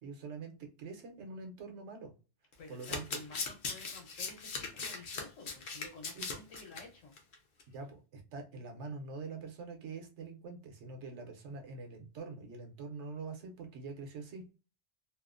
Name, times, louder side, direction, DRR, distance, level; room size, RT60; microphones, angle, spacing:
voice 1, 0.0-2.1 2.7-3.2 6.1-6.4 7.7-14.5, right 4 dB, 70° right, 3 dB, 1.0 m, -45 dB
Domestic sounds home sounds, 2.5-6.8 7.2-7.3 7.6-7.7, left 4 dB, 50° left, 0.7 m, -39 dB
voice 2, 2.6-7.1 7.6-7.7, left 3 dB, 80° left, 1 dB, 1.3 m, -52 dB
2.9 x 2.0 x 2.4 m, 0.34 s
omnidirectional pair, 1.3 m